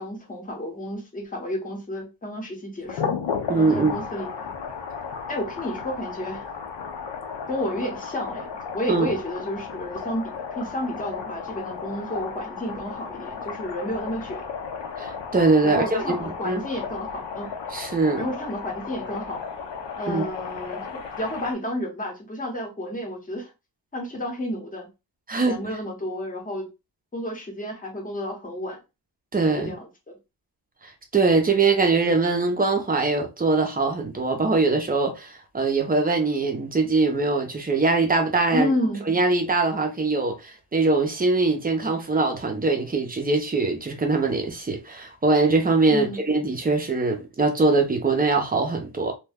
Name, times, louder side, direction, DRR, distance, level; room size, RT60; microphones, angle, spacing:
voice 1, 0.0-3.1 3.6-4.5 5.3-6.5 7.5-14.5 15.6-17.5 18.2-19.4 20.0-20.9 21.2-23.5 23.9-24.9 25.4-26.7 27.1-28.8 29.6-30.2 38.5-39.0 45.9-46.2, left 1 dB, 20° left, 0.8 m, -31 dB
sound 1, 2.8-21.5, left 6 dB, 75° left, 0.7 m, -34 dB
voice 2, 3.5-4.0 8.9-9.1 15.0-16.6 17.7-18.2 20.1-20.3 25.3-25.6 29.3-29.7 30.8-38.7 39.1-49.1, right 3 dB, 20° right, 0.5 m, -22 dB
2.7 x 2.1 x 3.4 m
wide cardioid pair, 170°, 44 cm